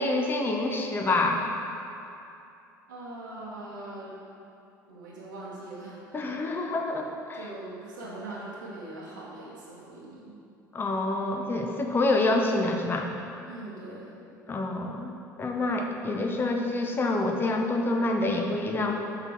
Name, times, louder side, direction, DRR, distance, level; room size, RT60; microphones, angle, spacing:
voice 1, 0.0-1.4 6.1-7.5 10.7-13.1 14.5-15.1 15.4-19.0, left 2 dB, 20° left, 2 dB, 0.7 m, -27 dB
voice 2, 2.9-4.1 4.9-6.4 7.3-10.4 13.4-14.2, right 2 dB, 75° right, -7 dB, 1.2 m, -41 dB
6.5 x 3.9 x 6.0 m, 2.7 s
figure-of-eight pair, 65°, 10 cm